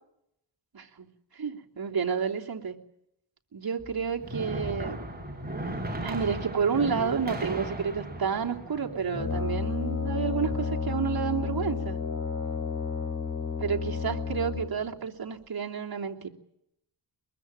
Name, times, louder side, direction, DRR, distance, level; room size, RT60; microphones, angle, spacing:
voice 1, 0.7-1.1 1.3-2.8 3.5-5.0 6.0-12.0 13.6-16.3, right 6 dB, 55° right, 0 dB, 3.1 m, -30 dB
sound 1, 3.8-9.9, right 1 dB, 20° right, 6.8 m, -36 dB
Brass instrument, 9.1-14.9, left 5 dB, 45° left, 4.2 m, -31 dB
22.5 x 22.5 x 9.0 m, 0.79 s
wide cardioid pair, 110°, 43 cm